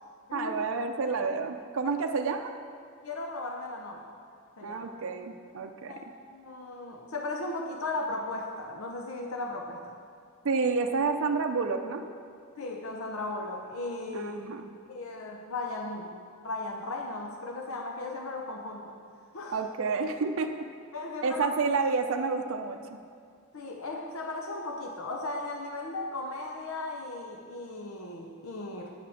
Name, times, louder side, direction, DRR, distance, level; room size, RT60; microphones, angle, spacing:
voice 1, 0.3-2.5 4.6-6.0 10.4-12.0 14.1-14.7 19.5-20.5 21.2-23.0, right 4 dB, 65° right, 5 dB, 0.5 m, -29 dB
voice 2, 3.0-4.2 4.6-4.9 5.9-10.0 12.6-14.4 14.9-16.2 16.4-19.0 19.3-19.6 20.9-21.5 23.5-28.9, left 2 dB, 70° left, 2 dB, 0.7 m, -36 dB
9.2 x 5.8 x 6.3 m, 2.2 s
head